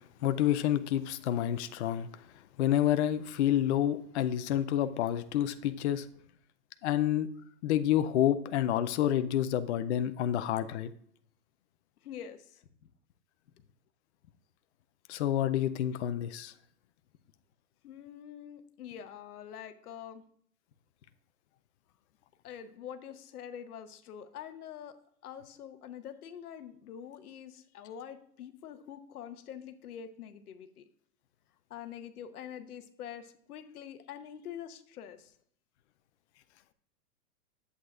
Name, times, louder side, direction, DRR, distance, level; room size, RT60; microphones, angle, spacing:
voice 1, 0.2-2.1 2.6-6.1 6.8-7.3 7.6-10.9 15.1-16.5, left 11 dB, 45° left, 12 dB, 0.5 m, -28 dB
voice 2, 12.0-12.9 17.8-20.2 22.4-30.9 31.7-35.3, left 9 dB, 65° left, 9 dB, 1.0 m, -45 dB
11.0 x 8.0 x 2.4 m, 0.64 s
hypercardioid pair, 125°, 48 cm